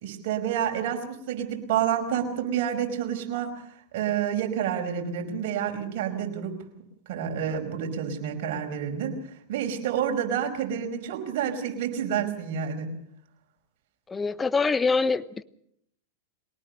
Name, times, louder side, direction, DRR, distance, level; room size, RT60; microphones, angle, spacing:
voice 1, 0.0-3.7 3.9-12.9, right 8 dB, 60° right, 5.2 m, -29 dB
voice 2, 14.1-15.4, left 4 dB, 15° left, 0.9 m, -24 dB
23.5 x 18.5 x 6.7 m
hypercardioid pair, 105°, 0 cm